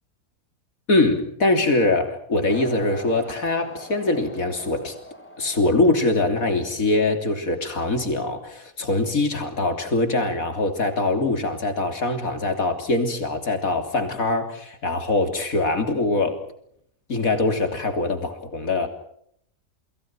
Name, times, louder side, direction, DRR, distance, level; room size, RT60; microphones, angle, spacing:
voice 1, 0.9-4.9 5.4-16.4 17.1-18.9, left 2 dB, 85° left, 6 dB, 3.7 m, -23 dB
sound 1, 2.4-7.1, equal, 10° left, 4.5 m, -41 dB
30.0 x 22.0 x 6.1 m, 0.68 s
omnidirectional pair, 1.4 m